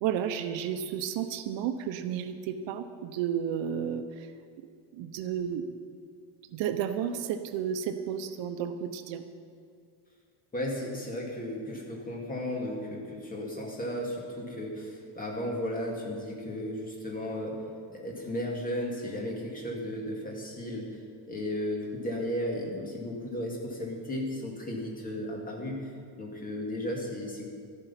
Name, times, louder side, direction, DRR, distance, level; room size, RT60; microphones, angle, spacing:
voice 1, 0.0-4.3 4.9-5.7 6.5-9.2, right 8 dB, 65° right, 8 dB, 0.9 m, -32 dB
voice 2, 10.5-17.6 17.9-21.0 21.3-25.9 26.2-27.5, left 1 dB, 15° left, -1 dB, 2.4 m, -34 dB
13.5 x 11.0 x 5.8 m, 2.2 s
cardioid pair, 160°, 48 cm